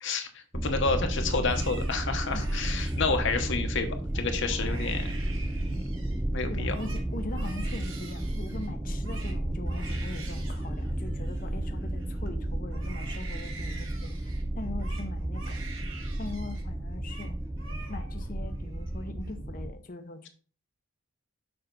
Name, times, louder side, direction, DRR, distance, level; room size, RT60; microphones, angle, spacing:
voice 1, 0.0-5.1 5.7-5.8 6.3-6.7, left 4 dB, 55° left, 5 dB, 1.1 m, -30 dB
sound 1, 0.5-19.7, right 1 dB, 10° right, 0.3 m, -32 dB
Crying sobbing, 1.3-3.6 4.1-4.2 4.5-6.2 6.5-12.3 12.7-16.7 16.9-17.3 17.6-18.3 18.6-19.3, right 4 dB, 60° right, 1.6 m, -47 dB
voice 2, 6.5-15.6 16.2-17.4 17.9-20.3, left 2 dB, 40° left, 6 dB, 0.7 m, -41 dB
6.7 x 5.4 x 4.0 m, 0.40 s
head